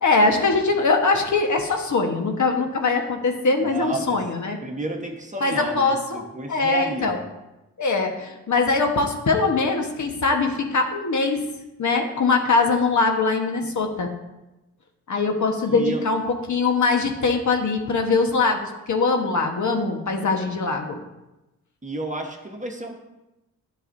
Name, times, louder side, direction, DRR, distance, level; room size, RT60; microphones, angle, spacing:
voice 1, 0.0-4.6 5.4-6.2 6.5-7.2 7.8-11.4 11.8-14.1 15.1-16.2 16.5-21.0, left 3 dB, 50° left, 3 dB, 1.3 m, -22 dB
voice 2, 3.6-4.2 4.6-7.3 15.7-16.0 21.8-22.9, right 2 dB, 20° right, 2 dB, 1.3 m, -31 dB
9.9 x 7.1 x 2.7 m, 0.98 s
cardioid pair, 60°, 37 cm